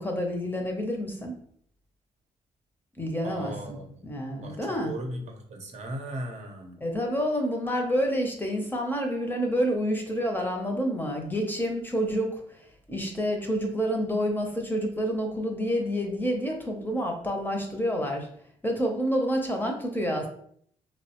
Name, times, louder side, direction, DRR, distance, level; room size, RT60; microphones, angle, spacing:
voice 1, 0.0-1.3 3.0-3.8 4.0-4.9 6.8-12.6 12.9-18.3 18.6-20.3, equal, 15° left, 2 dB, 0.6 m, -28 dB
voice 2, 3.2-4.0 4.4-6.8, right 1 dB, 55° right, 3 dB, 0.6 m, -37 dB
2.9 x 2.1 x 2.8 m, 0.63 s
cardioid pair, 85°, 14 cm